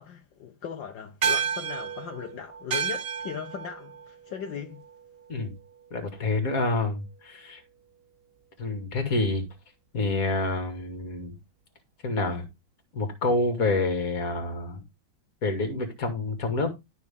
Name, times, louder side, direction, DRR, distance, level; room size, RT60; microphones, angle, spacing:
voice 1, 0.0-4.8, left 8 dB, 75° left, 1.8 m, -38 dB
sound 1, 1.2-5.9, right 7 dB, 65° right, 0.5 m, -32 dB
voice 2, 5.9-7.6 8.6-9.4 9.9-11.3 12.0-12.4 12.9-14.8 15.4-16.7, left 2 dB, 50° left, 2.4 m, -27 dB
12.0 x 6.2 x 3.6 m
omnidirectional pair, 2.1 m